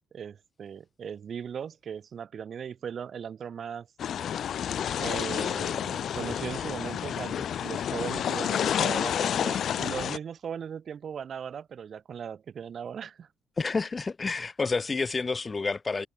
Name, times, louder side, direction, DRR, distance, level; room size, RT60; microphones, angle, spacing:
voice 1, 0.1-3.9 5.0-13.3, right 7 dB, 55° right, 1.8 m, -38 dB
sound 1, 4.0-10.2, left 9 dB, 65° left, 1.0 m, -29 dB
voice 2, 13.6-16.1, left 4 dB, 30° left, 2.6 m, -29 dB
cardioid pair, 90°, 0 cm